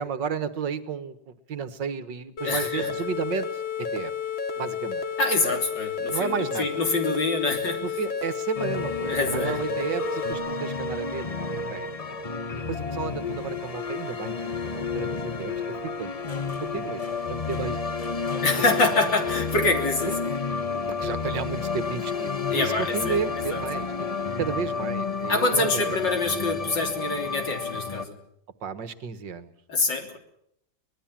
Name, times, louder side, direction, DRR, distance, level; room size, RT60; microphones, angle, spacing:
voice 1, 0.0-4.1 4.6-5.0 6.1-6.8 7.8-16.3 16.6-18.0 20.1-20.2 21.0-26.0 28.6-29.5, right 6 dB, 70° right, 12 dB, 2.0 m, -33 dB
sound 1, 2.4-10.3, left 6 dB, 90° left, 2.7 m, -31 dB
voice 2, 2.4-2.9 5.2-7.8 9.1-9.6 18.4-20.1 22.5-23.2 23.5-23.6 25.3-28.2 29.7-30.2, left 2 dB, 70° left, 4 dB, 3.9 m, -25 dB
sound 2, 8.5-28.0, left 4 dB, 30° left, 0.7 m, -31 dB
24.5 x 19.5 x 7.4 m, 0.74 s
omnidirectional pair, 2.0 m